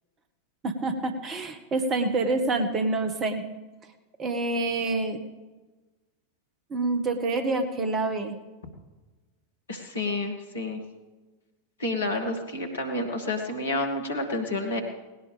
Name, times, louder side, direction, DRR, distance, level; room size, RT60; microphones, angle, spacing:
voice 1, 0.6-3.4 4.2-5.2 6.7-8.4, right 2 dB, 25° right, 8 dB, 1.6 m, -27 dB
voice 2, 9.7-10.8 11.8-14.8, left 2 dB, 70° left, 4 dB, 2.2 m, -29 dB
19.0 x 18.0 x 3.5 m, 1.2 s
figure-of-eight pair, 90°, 0 cm